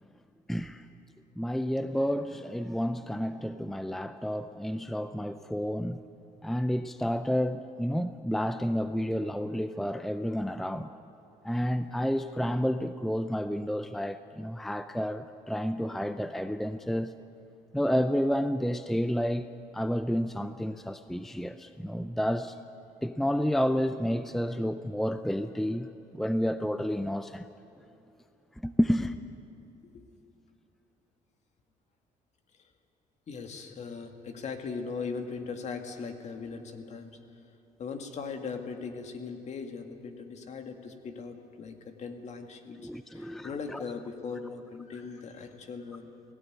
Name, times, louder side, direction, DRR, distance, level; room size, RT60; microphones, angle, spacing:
voice 1, 0.5-0.8 1.4-6.0 6.4-10.9 11.4-17.1 17.7-19.5 19.7-22.6 23.0-27.4 28.6-29.1 42.8-43.8, equal, ahead, 11 dB, 0.5 m, -30 dB
voice 2, 33.3-37.2 37.8-46.1, left 5 dB, 50° left, 5 dB, 2.1 m, -39 dB
18.0 x 16.5 x 9.5 m, 2.9 s
cardioid pair, 100°, 15 cm